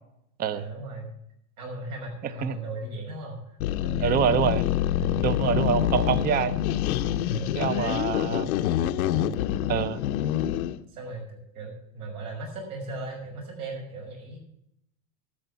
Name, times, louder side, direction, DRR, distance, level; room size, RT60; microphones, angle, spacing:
voice 1, 0.5-1.1 1.6-3.4 3.8-4.2 5.0-5.4 7.3-8.0 9.1-9.3 10.9-14.4, right 2 dB, 80° right, 0 dB, 6.0 m, -37 dB
sound 1, 3.6-10.8, left 12 dB, 80° left, 0.9 m, -26 dB
voice 2, 4.0-4.7 5.2-6.5 7.6-8.5 9.7-10.0, right 8 dB, 20° right, 15 dB, 0.6 m, -25 dB
13.0 x 6.6 x 8.3 m, 0.76 s
supercardioid pair, 135°, 42 cm